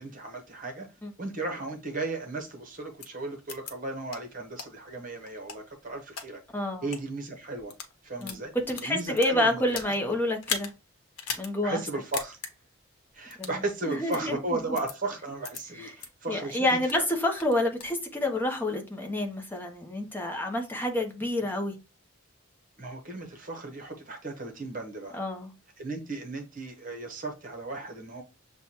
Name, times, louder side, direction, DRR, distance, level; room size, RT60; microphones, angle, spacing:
voice 1, 0.0-0.9 1.2-6.4 6.8-7.7 8.0-8.5 8.8-9.8 11.6-12.4 13.1-16.7 16.9-17.0 22.8-25.2 25.8-28.2, right 2 dB, 40° right, 1.0 m, -35 dB
sound 1, 3.0-3.1 3.5-3.7 4.1-4.2 4.6-4.7 5.2-6.3 6.8-7.0 7.6-7.9 8.2-9.9 10.4-10.7 11.2-11.5 11.8-11.9 12.1-12.5 13.3-13.6 14.1-14.2 14.8-14.9 15.4-15.6 16.0-16.1 16.5-17.0 17.4-18.0, left 6 dB, 80° left, 0.9 m, -36 dB
voice 2, 6.5-6.8 8.2-8.4 8.7-10.7 11.4-11.8 13.4-13.6 13.9-14.4 15.8-15.9 16.3-21.8 25.1-25.5, left 1 dB, 10° left, 0.8 m, -28 dB
6.8 x 2.3 x 2.8 m
head